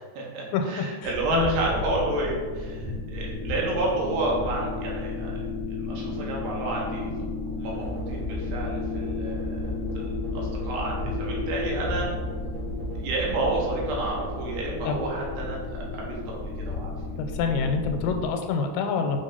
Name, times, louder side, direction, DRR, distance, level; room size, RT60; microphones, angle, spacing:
voice 1, 0.0-5.5 5.8-7.1 7.4-9.6 9.9-12.1 13.0-16.4 16.7-16.9, right 2 dB, 70° right, -3 dB, 3.3 m, -30 dB
voice 2, 0.5-1.6 14.9-15.0 17.2-19.2, left 5 dB, 85° left, 5 dB, 2.9 m, -27 dB
sound 1, 1.0-18.3, left 3 dB, 55° left, 0.8 m, -33 dB
sound 2, 7.8-16.0, right 1 dB, 90° right, 3.4 m, -36 dB
7.2 x 3.5 x 5.5 m, 1.5 s
omnidirectional pair, 5.1 m